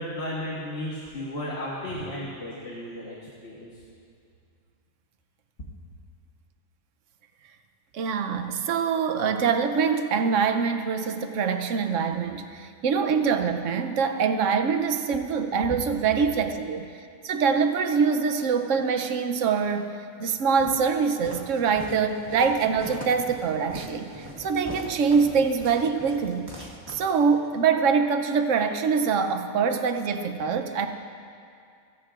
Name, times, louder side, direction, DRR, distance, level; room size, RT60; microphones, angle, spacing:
voice 1, 0.0-3.2 3.4-3.7, left 1 dB, 50° left, -5 dB, 1.5 m, -34 dB
voice 2, 7.9-16.9 17.2-19.9 20.2-26.5 26.9-30.9, right 6 dB, 65° right, 7 dB, 1.0 m, -24 dB
Walk footsteps, 20.6-27.5, right 1 dB, 15° right, 1.4 m, -41 dB
27.0 x 9.6 x 2.5 m, 2.4 s
omnidirectional pair, 1.5 m